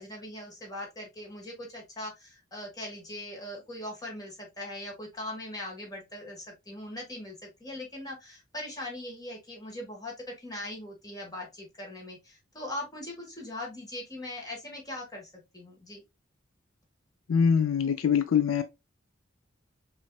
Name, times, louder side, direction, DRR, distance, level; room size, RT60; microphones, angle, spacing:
voice 1, 0.0-16.0, left 1 dB, 20° left, 1.5 m, -40 dB
voice 2, 17.3-18.6, left 7 dB, 85° left, 0.4 m, -23 dB
5.2 x 2.7 x 2.3 m
head